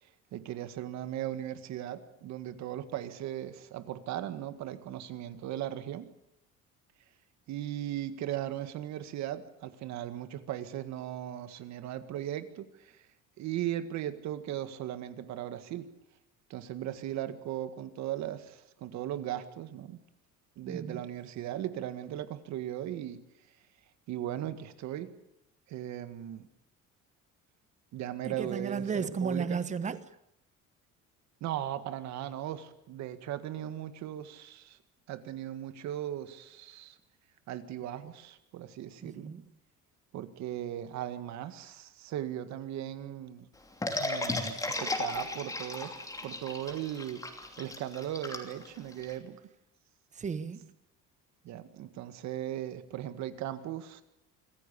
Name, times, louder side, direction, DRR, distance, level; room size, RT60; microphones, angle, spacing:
voice 1, 0.0-6.1 7.5-13.1 13.4-15.9 16.5-20.0 20.6-23.2 24.1-25.1 25.7-26.5 27.9-29.6 31.4-34.8 35.1-37.0 37.5-39.3 40.1-43.5 44.0-45.9 46.2-49.4 51.4-54.0, right 12 dB, 65° right, 1.9 m, -38 dB
voice 2, 20.7-21.0 28.2-30.1 39.0-39.4 50.1-50.7, right 5 dB, 25° right, 1.1 m, -34 dB
sound 1, 43.8-49.1, left 2 dB, 10° left, 2.9 m, -35 dB
25.5 x 15.5 x 8.6 m
cardioid pair, 160°, 30 cm